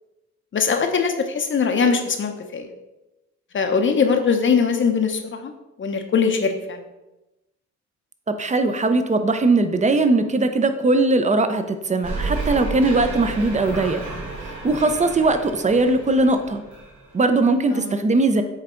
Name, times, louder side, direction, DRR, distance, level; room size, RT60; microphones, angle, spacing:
voice 1, 0.5-2.7 3.5-5.5 5.8-6.8 17.7-18.0, left 5 dB, 40° left, 5 dB, 0.7 m, -21 dB
voice 2, 8.3-14.0 14.6-16.6 17.1-18.4, right 2 dB, 25° right, 8 dB, 0.6 m, -20 dB
sound 1, 12.0-17.5, right 3 dB, 75° right, 2.0 m, -32 dB
8.1 x 3.3 x 3.8 m, 1.0 s
cardioid pair, 90°, 30 cm